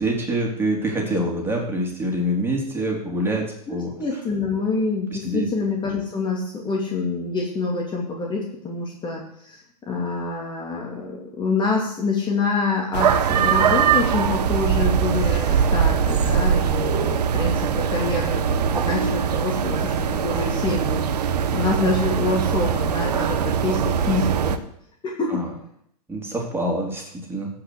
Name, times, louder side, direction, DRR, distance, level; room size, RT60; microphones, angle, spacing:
voice 1, 0.0-3.9 5.2-5.5 25.3-25.5 26.1-27.5, right 1 dB, 10° right, -1 dB, 4.0 m, -25 dB
voice 2, 3.7-9.6 9.9-21.0 21.5-24.6 25.0-25.4, left 3 dB, 20° left, -1 dB, 2.6 m, -26 dB
sound 1, 12.9-24.6, right 7 dB, 80° right, 1.2 m, -21 dB
15.5 x 5.9 x 8.2 m, 0.70 s
hypercardioid pair, 115°, 20 cm